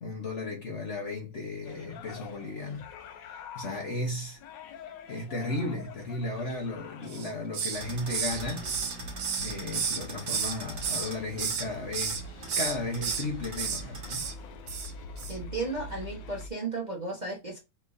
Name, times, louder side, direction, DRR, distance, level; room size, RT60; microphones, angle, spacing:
voice 1, 0.0-2.9 3.2-4.4 5.1-8.7 9.4-12.2 12.6-14.3, left 2 dB, 45° left, 1.1 m, -35 dB
sound 1, 1.6-16.5, left 4 dB, 75° left, 1.3 m, -45 dB
Hiss, 7.1-7.8 8.1-10.6 10.8-11.7 11.9-12.2 12.5-13.2 13.6-13.8 14.1-14.3 14.7-14.9 15.2-15.3, right 6 dB, 75° right, 1.6 m, -32 dB
sound 2, 7.7-14.3, right 3 dB, 45° right, 1.6 m, -43 dB
voice 2, 15.3-17.6, right 3 dB, 30° right, 1.0 m, -34 dB
4.7 x 3.7 x 2.6 m
omnidirectional pair, 2.1 m